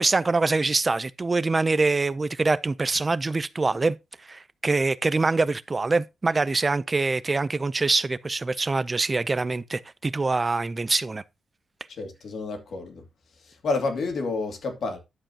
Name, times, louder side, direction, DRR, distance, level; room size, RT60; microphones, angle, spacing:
voice 1, 0.0-4.0 4.2-11.2, right 3 dB, 25° right, 0.5 m, -24 dB
voice 2, 11.9-13.0 13.4-15.0, left 3 dB, 65° left, 2.6 m, -30 dB
11.0 x 7.7 x 2.8 m
wide cardioid pair, 150°, 0 cm